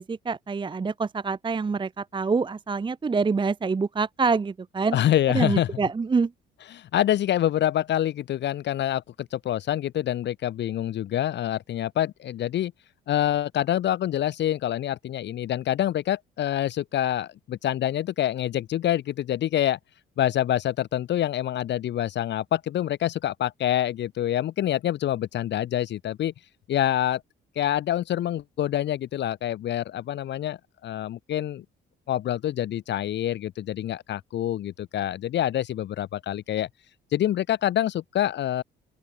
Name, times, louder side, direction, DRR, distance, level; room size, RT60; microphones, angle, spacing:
voice 1, 0.0-5.0 5.3-6.3, right 4 dB, 25° right, 0.7 m, -26 dB
voice 2, 4.9-5.7 6.7-12.7 13.1-19.8 20.2-26.3 26.7-27.2 27.6-31.6 32.1-36.7 37.1-38.6, left 12 dB, 60° left, 0.7 m, -26 dB
open air
cardioid pair, 90°, 20 cm